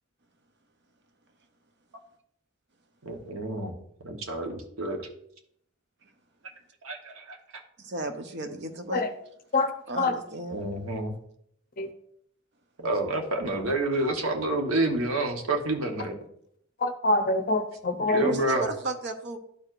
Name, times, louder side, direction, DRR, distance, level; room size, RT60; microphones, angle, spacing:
voice 1, 3.0-3.7 4.0-5.1 6.8-7.4 10.5-11.1 12.8-16.2 18.1-18.6, right 2 dB, 75° right, 3 dB, 1.1 m, -28 dB
voice 2, 7.8-9.0 9.9-10.6 18.2-19.4, right 2 dB, 55° right, 7 dB, 0.7 m, -34 dB
voice 3, 16.8-18.3, left 2 dB, 40° left, 7 dB, 0.7 m, -25 dB
12.0 x 4.6 x 2.5 m, 0.70 s
head